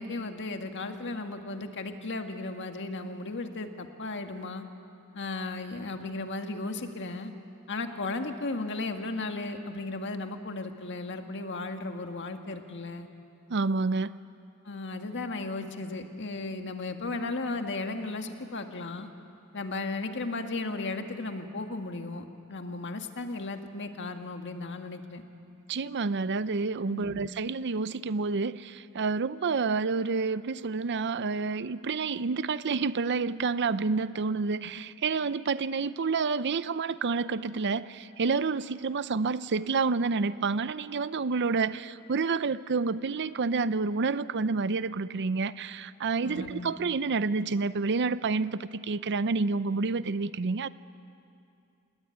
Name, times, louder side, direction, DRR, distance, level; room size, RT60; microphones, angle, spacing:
voice 1, 0.0-4.6 5.1-7.3 7.7-13.1 14.7-19.1 19.5-25.2 26.9-27.2 46.2-46.7, left 3 dB, 55° left, 5 dB, 1.8 m, -35 dB
voice 2, 13.5-14.1 25.7-50.7, right 4 dB, 55° right, 15 dB, 0.6 m, -29 dB
28.0 x 19.0 x 9.5 m, 2.5 s
head